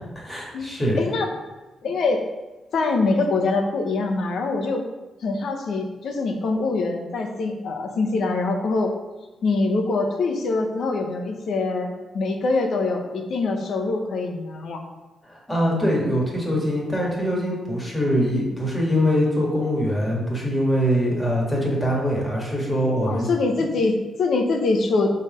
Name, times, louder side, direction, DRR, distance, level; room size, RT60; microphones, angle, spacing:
voice 1, 0.2-1.1 15.2-23.3, equal, 10° left, -3 dB, 1.9 m, -23 dB
voice 2, 1.0-1.3 1.8-2.2 2.7-4.8 5.2-8.9 9.4-14.8 23.1-25.1, left 3 dB, 65° left, 4 dB, 0.9 m, -24 dB
6.4 x 4.0 x 5.1 m, 1.2 s
wide cardioid pair, 135°, 0 cm